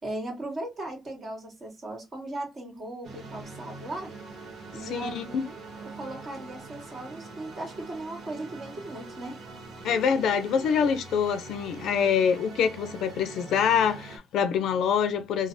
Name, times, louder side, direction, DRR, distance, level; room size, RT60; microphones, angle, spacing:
voice 1, 0.0-4.1 4.7-5.5 5.9-9.4, right 1 dB, 45° right, 1.6 m, -37 dB
sound 1, 3.0-14.2, right 3 dB, 65° right, 1.1 m, -43 dB
voice 2, 4.9-5.5 9.8-15.5, left 7 dB, 80° left, 0.5 m, -25 dB
3.1 x 2.0 x 2.6 m
cardioid pair, 90°, 0 cm